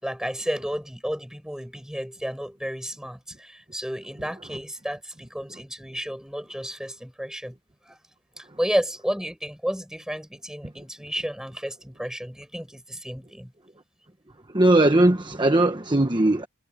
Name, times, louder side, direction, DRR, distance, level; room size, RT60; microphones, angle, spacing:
voice 1, 0.0-7.6 7.9-8.0 8.4-13.5, equal, 5° right, 7.0 m, -32 dB
voice 2, 14.5-16.5, right 1 dB, 20° right, 1.2 m, -19 dB
head